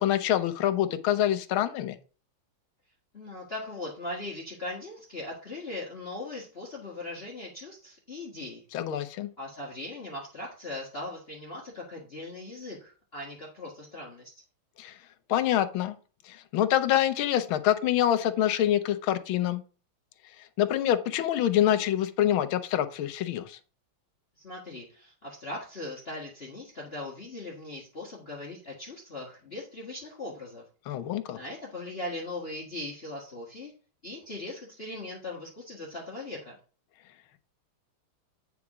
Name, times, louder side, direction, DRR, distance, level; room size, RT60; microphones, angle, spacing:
voice 1, 0.0-2.0 8.7-9.3 14.8-15.0 15.3-16.0 16.3-19.6 20.6-23.6 30.9-31.4, left 11 dB, 75° left, 11 dB, 1.5 m, -26 dB
voice 2, 3.1-8.6 9.4-14.3 24.4-30.6 31.3-33.7 34.0-36.6, left 2 dB, 30° left, -2 dB, 1.8 m, -39 dB
8.9 x 4.8 x 4.9 m, 0.37 s
omnidirectional pair, 2.3 m